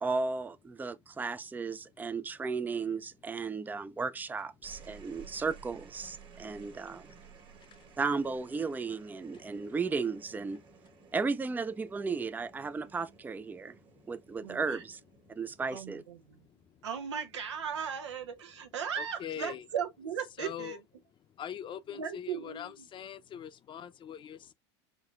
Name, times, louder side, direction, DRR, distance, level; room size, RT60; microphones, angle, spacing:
voice 1, 0.0-7.1 8.0-10.6 11.1-13.8 14.1-15.0 15.3-16.0, right 4 dB, 10° right, 0.4 m, -34 dB
sound 1, 4.4-17.0 18.2-18.7, right 6 dB, 35° right, 1.4 m, -56 dB
voice 2, 14.4-14.8 15.7-16.5 16.8-20.8 21.9-22.9, right 7 dB, 90° right, 1.0 m, -37 dB
voice 3, 19.0-19.6 20.4-20.8 21.4-24.5, left 9 dB, 35° left, 0.7 m, -42 dB
5.9 x 2.7 x 2.4 m
hypercardioid pair, 90°, 14 cm